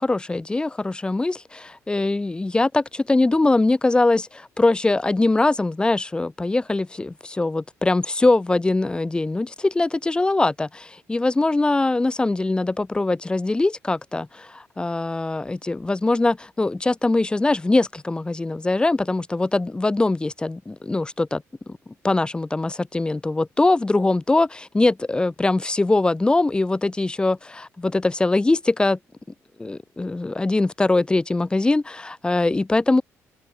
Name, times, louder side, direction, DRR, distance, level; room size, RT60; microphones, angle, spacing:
voice 1, 0.0-21.8 22.0-29.0 29.6-33.0, left 2 dB, 15° left, 3.7 m, -22 dB
cardioid pair, 105°, 6 cm